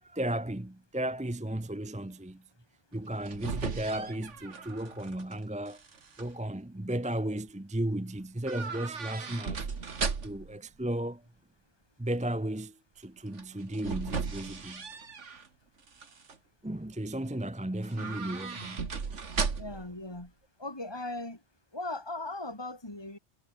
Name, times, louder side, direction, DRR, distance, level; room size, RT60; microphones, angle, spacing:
voice 1, 0.0-2.4 2.9-5.8 6.2-9.6 10.2-11.2 12.0-14.9 16.6-19.2, right 1 dB, 5° right, 0.7 m, -34 dB
sound 1, 3.0-5.4 5.7-6.2 8.4-10.6 13.3-15.5 15.9-16.4 17.8-19.9 20.2-20.3, right 5 dB, 75° right, 2.1 m, -36 dB
voice 2, 19.6-20.3 20.6-21.4 21.7-23.2, left 2 dB, 20° left, 3.4 m, -38 dB
omnidirectional pair, 1.2 m